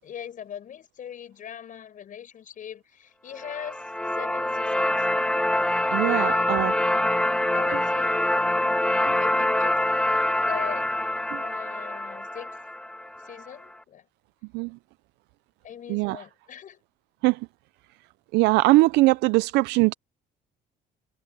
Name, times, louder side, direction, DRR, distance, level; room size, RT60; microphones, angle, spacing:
voice 1, 0.0-5.0 6.1-7.1 7.5-8.6 9.2-9.9 10.3-11.1 11.4-12.6 13.2-14.1 15.6-16.8, left 9 dB, 50° left, 6.4 m, -41 dB
sound 1, 3.4-13.5, left 1 dB, 5° left, 0.6 m, -25 dB
voice 2, 5.9-6.7 9.1-9.2 11.3-11.4 14.5-14.8 15.9-16.2 17.2-17.5 18.3-19.9, right 21 dB, 90° right, 0.4 m, -21 dB
cardioid pair, 110°, 17 cm